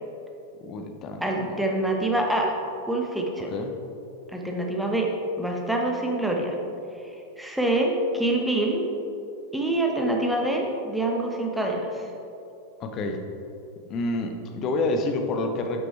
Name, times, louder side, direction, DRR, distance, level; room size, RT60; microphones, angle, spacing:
voice 1, 0.6-1.6 3.5-3.7 12.8-13.3 13.9-15.8, left 2 dB, 35° left, 5 dB, 0.8 m, -28 dB
voice 2, 1.2-2.5 2.9-3.5 4.3-5.1 5.4-6.6 7.4-8.8 9.5-12.1, right 1 dB, 5° right, 0 dB, 1.1 m, -25 dB
11.0 x 6.2 x 3.3 m, 2.8 s
figure-of-eight pair, 90°, 0 cm